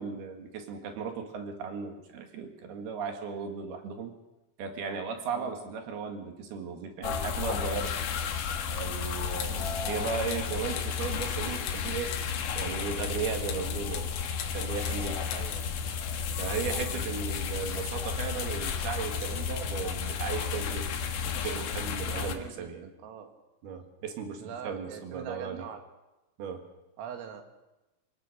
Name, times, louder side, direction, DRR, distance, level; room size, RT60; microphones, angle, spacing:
voice 1, 0.0-4.1 4.6-7.9 8.7-12.1 12.6-14.1 14.5-15.2 16.4-20.9 21.2-22.9 23.6-25.7 26.4-26.6, right 6 dB, 60° right, 5 dB, 3.4 m, -36 dB
sound 1, 7.0-22.3, left 7 dB, 65° left, 2.1 m, -33 dB
sound 2, 9.2-15.7, left 9 dB, 90° left, 4.3 m, -43 dB
voice 2, 15.3-15.7 16.6-17.1 22.1-23.3 24.4-25.8 27.0-27.4, right 8 dB, 80° right, 5 dB, 4.6 m, -43 dB
26.5 x 17.5 x 6.6 m, 1.0 s
omnidirectional pair, 5.9 m